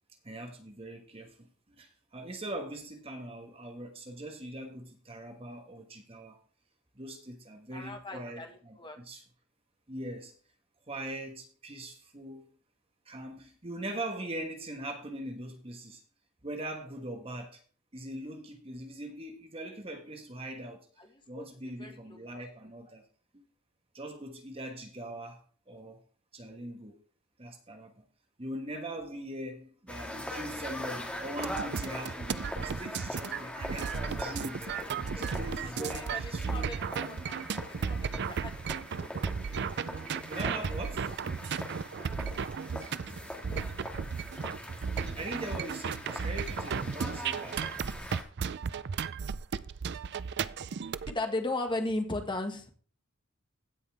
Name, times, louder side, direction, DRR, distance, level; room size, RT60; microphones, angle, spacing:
voice 1, 0.2-1.5 1.8-6.4 7.0-9.2 9.9-10.3 10.9-12.5 13.0-16.0 16.4-17.6 17.9-20.9 21.3-23.0 23.3-23.4 23.9-26.0 26.3-27.0 27.4-28.1 28.4-34.7 35.1-36.8 40.3-41.1 45.1-47.6, right 1 dB, 25° right, 1.4 m, -41 dB
voice 2, 7.7-9.0 21.3-21.5 21.8-22.0 35.6-36.2 36.5-36.8 37.1-37.4 37.8-38.6 38.9-39.3 42.1-42.2 43.1-43.7 51.1-52.7, left 2 dB, 20° left, 1.8 m, -36 dB
sound 1, 29.9-48.2, left 1 dB, 5° left, 2.1 m, -42 dB
sound 2, 31.4-51.1, right 6 dB, 55° right, 0.5 m, -35 dB
16.0 x 5.5 x 3.5 m
head